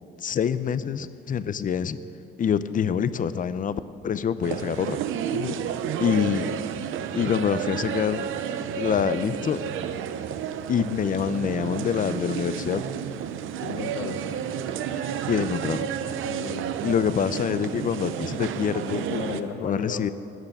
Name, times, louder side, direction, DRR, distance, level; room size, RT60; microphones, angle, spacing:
voice 1, 0.2-2.0 2.4-5.0 6.0-6.6 7.2-8.3 8.8-9.6 10.7-12.8 15.3-15.9 16.8-19.1 19.6-20.1, left 7 dB, 40° left, 15 dB, 0.6 m, -26 dB
sound 1, 4.4-19.4, right 9 dB, 85° right, 0.6 m, -31 dB
voice 2, 5.3-5.6 13.6-14.3 16.2-16.8 19.1-20.1, left 7 dB, 85° left, 3 dB, 0.9 m, -34 dB
13.0 x 6.7 x 9.9 m, 2.5 s
cardioid pair, 90°, 20 cm